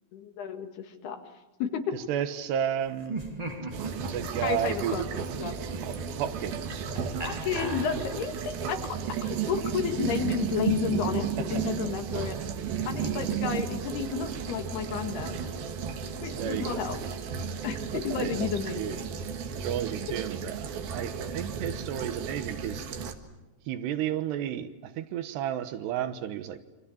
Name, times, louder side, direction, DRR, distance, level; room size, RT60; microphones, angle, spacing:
voice 1, 0.1-1.2 1.6-1.8 4.4-5.6 7.3-12.4 12.9-15.4 16.2-17.0 17.6-19.1, left 7 dB, 75° left, 6 dB, 3.9 m, -32 dB
voice 2, 1.9-3.2 3.9-5.1 5.7-6.9 8.8-8.9 11.4-11.6 16.3-16.9 17.9-19.0 19.5-22.9 23.7-26.6, right 10 dB, 85° right, 10 dB, 3.4 m, -33 dB
Laughter, 3.0-8.4, right 2 dB, 15° right, 1.4 m, -39 dB
sound 1, 3.7-23.1, right 7 dB, 70° right, 3.3 m, -34 dB
28.0 x 25.5 x 7.2 m, 1.1 s
omnidirectional pair, 4.7 m